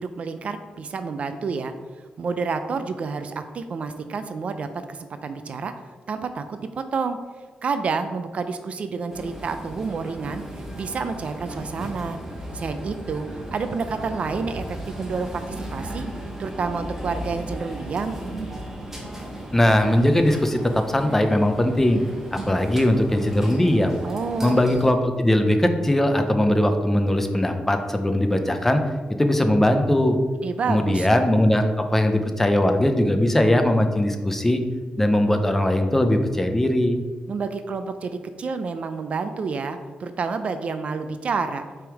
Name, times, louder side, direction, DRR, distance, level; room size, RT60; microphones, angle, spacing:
voice 1, 0.0-1.7 2.2-5.7 6.1-7.2 7.6-12.2 12.5-16.1 16.4-18.2 24.0-24.6 30.4-31.1 37.3-41.6, right 4 dB, 50° right, 9 dB, 0.4 m, -29 dB
sound 1, 9.1-24.9, right 1 dB, 15° right, 0.9 m, -36 dB
voice 2, 19.5-22.0 22.3-24.0 24.4-28.8 29.2-30.2 30.7-34.6 35.0-37.0, left 1 dB, 10° left, 6 dB, 0.5 m, -20 dB
6.1 x 3.5 x 4.6 m, 1.4 s
wide cardioid pair, 145°, 3 cm